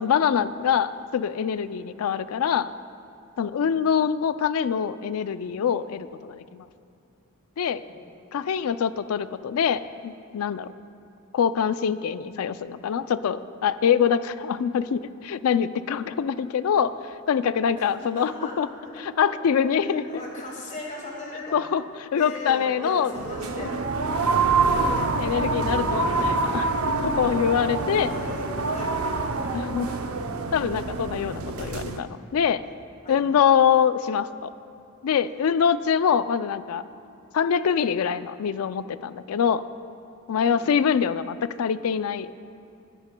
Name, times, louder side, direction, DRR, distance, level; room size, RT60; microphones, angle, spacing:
voice 1, 0.0-2.7 3.4-6.7 7.6-7.8 8.3-10.7 11.3-18.7 19.2-20.0 21.5-21.8 22.1-23.1 23.6-23.7 24.7-24.8 25.2-28.1 29.5-29.9 30.5-32.6 33.1-34.5 35.0-36.8 37.3-39.6 40.3-42.5, left 7 dB, 75° left, 14 dB, 0.4 m, -24 dB
voice 2, 18.1-18.9 19.2-19.3 19.8-21.6 22.1-23.8 24.6-25.3 25.7-26.3 27.0-29.6 29.8-30.3 33.0-33.4 40.4-40.6, left 1 dB, 35° left, -3 dB, 2.0 m, -39 dB
sound 1, 23.1-32.0, right 3 dB, 75° right, 0.7 m, -26 dB
23.5 x 9.9 x 2.2 m, 2.6 s
head